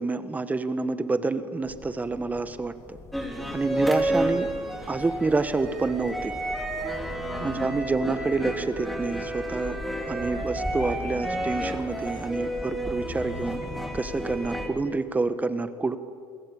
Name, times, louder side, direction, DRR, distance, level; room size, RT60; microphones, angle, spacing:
voice 1, 0.0-3.0 3.5-4.5 4.9-6.3 7.4-9.8 10.1-13.6 13.9-16.0, right 3 dB, 15° right, 11 dB, 1.5 m, -28 dB
sound 1, 1.6-14.4, left 4 dB, 30° left, 1.9 m, -44 dB
sound 2, 3.1-14.7, right 1 dB, ahead, 5.0 m, -31 dB
28.5 x 22.0 x 8.9 m, 2.3 s
cardioid pair, 115°, 9 cm